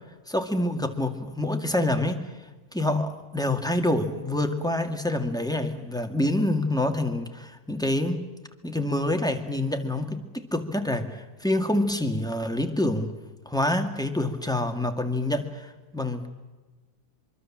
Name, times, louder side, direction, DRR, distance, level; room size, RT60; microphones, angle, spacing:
voice 1, 0.3-2.3 2.7-8.2 8.6-13.1 13.5-16.3, left 1 dB, ahead, 6 dB, 1.9 m, -27 dB
24.5 x 24.0 x 7.4 m, 1.2 s
omnidirectional pair, 1.8 m